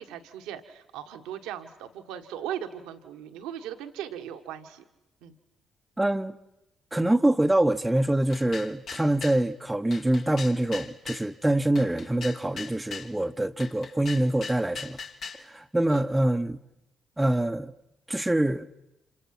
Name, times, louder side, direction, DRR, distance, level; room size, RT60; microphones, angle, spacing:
voice 1, 0.0-4.8 5.2-5.3 15.9-16.1, right 10 dB, 75° right, 1.5 m, -38 dB
voice 2, 6.0-6.3 6.9-15.0 15.4-16.6 17.2-17.7 18.1-18.7, right 1 dB, 10° right, 1.0 m, -25 dB
sound 1, 8.3-9.4 9.9-11.3 11.8-13.1 13.6-15.4, left 5 dB, 55° left, 2.1 m, -40 dB
30.0 x 27.0 x 6.1 m
hypercardioid pair, 45°, 0 cm